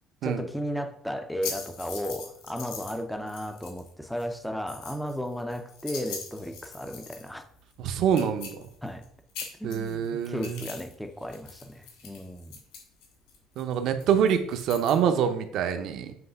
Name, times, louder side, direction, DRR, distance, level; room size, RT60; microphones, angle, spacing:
voice 1, 0.2-7.4 8.8-9.0 9.6-12.5, equal, ahead, 0.5 m, -34 dB
sound 1, 1.4-3.0 3.3-3.9 4.2-7.4 7.7-7.8 8.1-9.0 9.3-10.9 11.2-14.9, left 6 dB, 80° left, 2.6 m, -41 dB
voice 2, 7.8-8.5 9.6-10.6 13.6-16.1, right 8 dB, 50° right, 0.8 m, -25 dB
7.8 x 3.2 x 5.5 m
cardioid pair, 175°, 0 cm